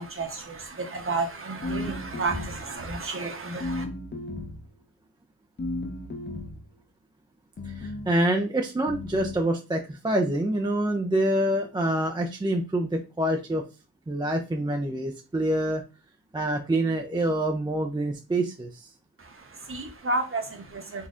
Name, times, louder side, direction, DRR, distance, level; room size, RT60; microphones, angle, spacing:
voice 1, 0.0-3.8 19.2-21.1, right 3 dB, 35° right, 0.8 m, -32 dB
sound 1, 1.6-2.8 3.6-4.7 5.6-6.7 7.6-8.1 8.9-9.4, left 2 dB, 25° left, 0.7 m, -34 dB
voice 2, 7.6-13.6 14.1-15.8 16.3-18.9, right 1 dB, 10° right, 0.4 m, -26 dB
4.1 x 2.7 x 2.4 m
wide cardioid pair, 105°, 40 cm